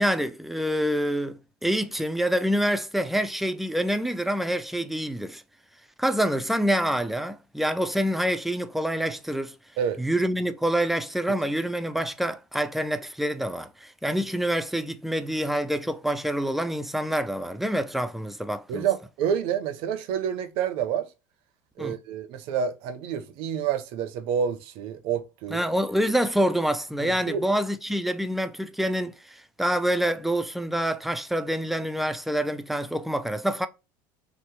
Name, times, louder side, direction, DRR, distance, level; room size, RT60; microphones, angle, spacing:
voice 1, 0.0-5.4 6.0-9.5 10.0-18.9 21.8-22.0 25.5-33.7, equal, ahead, 0.3 m, -26 dB
voice 2, 18.7-21.1 21.8-25.6 27.0-27.4, right 8 dB, 65° right, 0.6 m, -28 dB
2.9 x 2.1 x 3.1 m
supercardioid pair, 100°, 10 cm